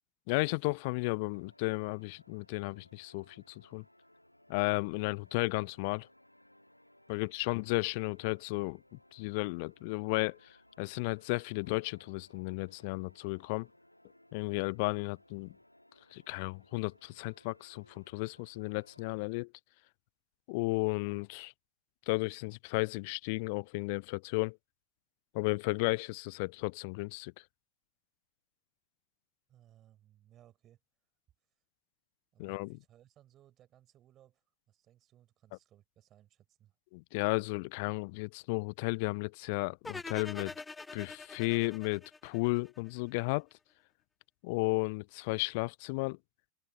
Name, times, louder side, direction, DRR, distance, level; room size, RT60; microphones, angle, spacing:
voice 1, 0.3-3.8 4.5-6.1 7.1-8.8 9.1-13.7 14.3-15.5 16.1-19.5 20.5-21.5 22.1-24.6 25.3-27.3 32.4-32.8 36.9-40.5 40.9-43.5 44.4-46.2, left 28 dB, 45° left, 0.7 m, -34 dB
sound 1, 1.3-19.1, left 1 dB, 90° left, 2.8 m, -63 dB
voice 2, 7.1-7.5 29.5-30.8 32.3-36.8, right 12 dB, 30° right, 7.4 m, -63 dB
sound 2, 39.8-43.0, left 3 dB, 10° left, 0.3 m, -45 dB
figure-of-eight pair, 90°, 0 cm